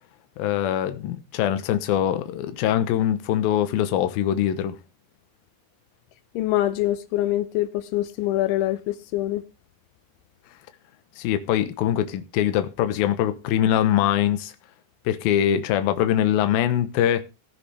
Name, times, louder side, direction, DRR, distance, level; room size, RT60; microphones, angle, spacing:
voice 1, 0.4-4.8 11.2-14.5 15.1-17.2, left 11 dB, 70° left, 2.4 m, -23 dB
voice 2, 6.4-9.4, left 14 dB, 90° left, 3.4 m, -24 dB
17.5 x 9.8 x 3.4 m
omnidirectional pair, 5.4 m